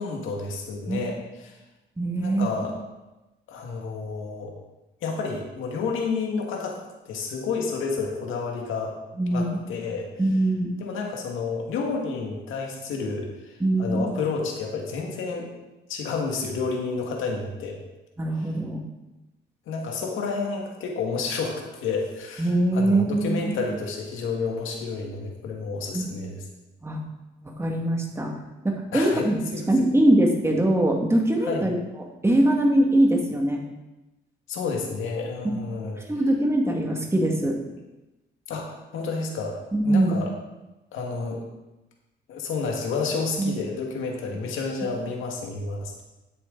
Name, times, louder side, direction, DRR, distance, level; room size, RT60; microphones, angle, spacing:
voice 1, 0.0-1.6 2.2-2.8 3.5-4.5 5.0-6.8 7.1-9.0 9.3-10.1 10.8-15.5 15.9-17.8 19.7-26.4 28.9-29.6 31.4-31.7 34.5-36.0 38.5-40.3 40.9-41.4 42.3-45.9, left 4 dB, 85° left, 1 dB, 2.0 m, -30 dB
voice 2, 2.0-2.5 9.2-9.6 10.2-10.7 13.6-14.1 18.2-18.8 22.4-23.4 25.9-26.1 26.8-27.0 27.4-28.3 28.6-29.4 29.7-31.7 32.2-33.6 35.4-35.6 36.1-37.6 39.7-40.1 43.4-43.5, right 1 dB, 15° right, 1 dB, 2.1 m, -22 dB
10.5 x 8.0 x 4.0 m, 1.0 s
cardioid pair, 90°, 20 cm